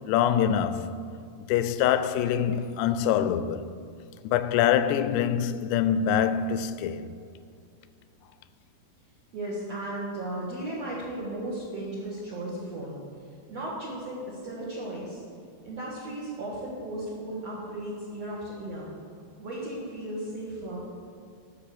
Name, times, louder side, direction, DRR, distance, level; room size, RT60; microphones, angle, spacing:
voice 1, 0.1-1.0 1.4-3.7 4.2-7.1, left 9 dB, 90° left, 2.6 m, -25 dB
voice 2, 9.3-13.0 13.5-15.2 15.6-18.9 19.4-20.8, right 1 dB, 50° right, 2.1 m, -35 dB
13.0 x 5.9 x 6.7 m
omnidirectional pair, 4.7 m